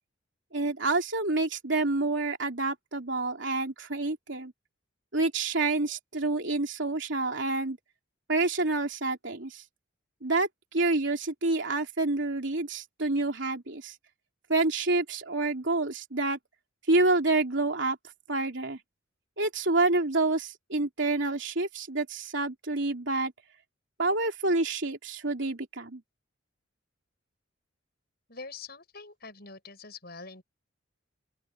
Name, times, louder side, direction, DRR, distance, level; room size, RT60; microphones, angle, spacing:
voice 1, 0.5-4.5 5.1-7.8 8.3-9.6 10.2-10.5 10.7-13.9 14.5-16.4 16.9-18.0 18.3-18.8 19.4-23.3 24.0-26.0, right 2 dB, 65° right, 3.4 m, -28 dB
voice 2, 28.3-30.4, left 4 dB, 50° left, 7.9 m, -44 dB
open air
head